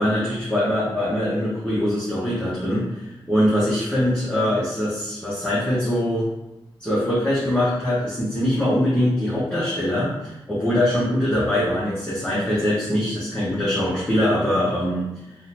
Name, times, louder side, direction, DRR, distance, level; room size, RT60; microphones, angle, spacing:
voice 1, 0.0-6.3 6.8-15.1, left 1 dB, 10° left, -9 dB, 0.7 m, -22 dB
3.6 x 2.0 x 2.8 m, 0.94 s
wide cardioid pair, 135°, 9 cm